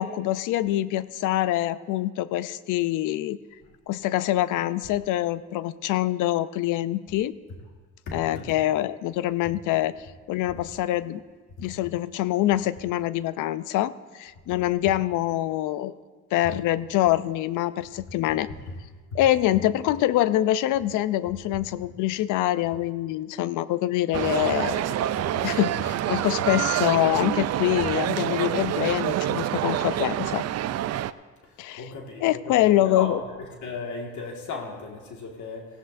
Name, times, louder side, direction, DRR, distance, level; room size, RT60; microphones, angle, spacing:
voice 1, 0.0-3.4 3.9-7.3 8.1-10.0 10.3-11.2 11.6-15.9 16.3-18.5 19.1-24.9 25.4-30.4 31.6-31.9 32.2-33.2, left 14 dB, 90° left, 16 dB, 0.5 m, -25 dB
voice 2, 8.1-8.5 31.8-32.4 32.9-33.1 33.6-35.7, left 4 dB, 75° left, 1 dB, 1.9 m, -35 dB
sound 1, 24.1-31.1, right 12 dB, 60° right, 0.4 m, -27 dB
18.0 x 15.5 x 2.6 m, 1.5 s
cardioid pair, 90°, 30 cm